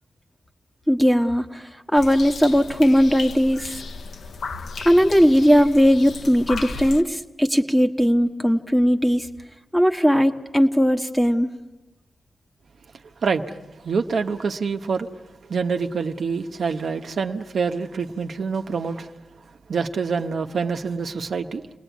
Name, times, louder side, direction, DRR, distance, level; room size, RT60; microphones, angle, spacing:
voice 1, 0.9-3.8 4.8-9.3 9.7-11.5, equal, 5° left, 1.4 m, -18 dB
sound 1, 1.9-7.0, left 4 dB, 75° left, 0.9 m, -35 dB
voice 2, 13.8-15.1 15.5-19.1 19.7-21.6, right 5 dB, 70° right, 1.2 m, -26 dB
29.5 x 20.0 x 9.4 m
wide cardioid pair, 105°, 0 cm